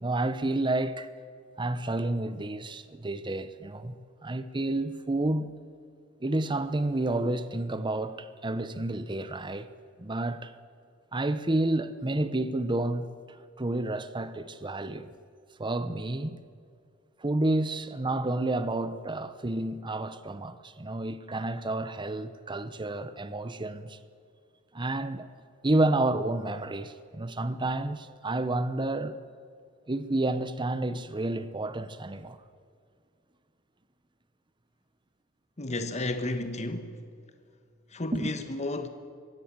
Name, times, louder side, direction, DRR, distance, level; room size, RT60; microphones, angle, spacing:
voice 1, 0.0-1.1 1.6-5.5 6.2-9.7 10.0-10.5 11.1-15.1 15.6-16.5 17.2-24.0 24.7-25.3 25.6-29.1 29.9-32.4 38.1-38.3, right 2 dB, 25° right, 0.8 m, -30 dB
voice 2, 35.6-37.0 37.9-38.9, left 2 dB, 35° left, 1.2 m, -32 dB
23.5 x 17.5 x 7.4 m
head